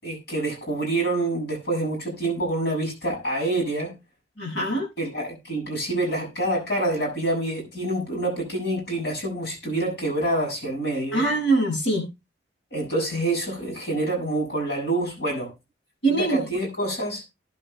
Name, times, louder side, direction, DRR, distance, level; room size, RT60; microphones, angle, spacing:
voice 1, 0.0-3.9 5.0-11.3 12.7-15.5 16.1-17.2, right 2 dB, 65° left, 7.5 m, -27 dB
voice 2, 4.4-4.9 11.1-12.0 16.0-16.4, right 2 dB, 80° left, 7.2 m, -23 dB
19.5 x 11.0 x 2.3 m
head